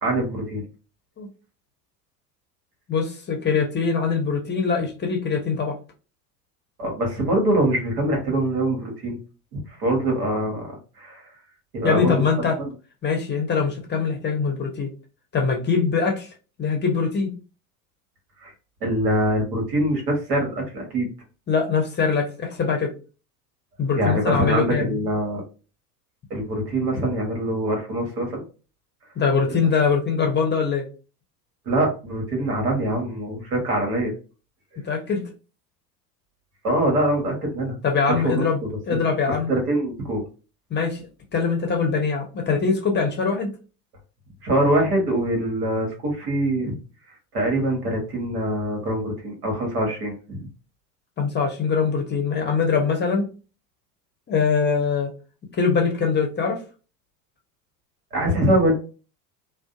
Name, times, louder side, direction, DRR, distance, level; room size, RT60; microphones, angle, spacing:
voice 1, 0.0-0.6 6.8-9.2 9.5-11.3 11.7-12.2 12.6-12.7 18.4-18.5 18.8-21.1 24.0-25.4 26.3-28.4 31.6-34.1 36.6-37.8 38.1-38.7 39.5-40.2 44.4-46.7 47.3-50.5 58.1-58.7, right 1 dB, 75° right, 1.2 m, -24 dB
voice 2, 2.9-5.8 11.8-12.6 13.0-14.9 15.3-16.3 16.6-17.3 21.5-22.9 23.8-25.1 29.2-30.9 34.8-35.2 37.8-38.6 38.9-39.5 40.7-41.1 41.3-43.5 51.2-53.3 54.3-55.1 55.5-56.6, left 5 dB, 25° left, 0.7 m, -23 dB
2.5 x 2.1 x 2.4 m
figure-of-eight pair, 75°, 47 cm